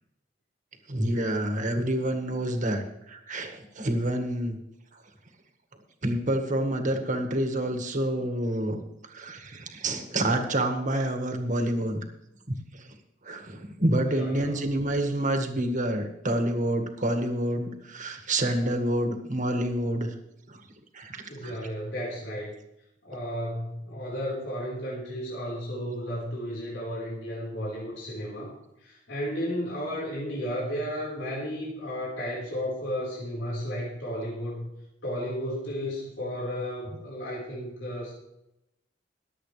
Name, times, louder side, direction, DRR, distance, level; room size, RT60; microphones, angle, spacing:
voice 1, 0.9-4.6 6.0-8.8 9.1-12.0 12.5-12.9 13.2-20.1 20.5-20.6 20.9-21.6, right 1 dB, 45° right, 5 dB, 1.8 m, -28 dB
voice 2, 14.0-14.6 21.3-22.5 23.0-34.7 35.0-38.1, equal, 90° left, -5 dB, 4.5 m, -33 dB
22.5 x 8.2 x 3.3 m, 0.85 s
head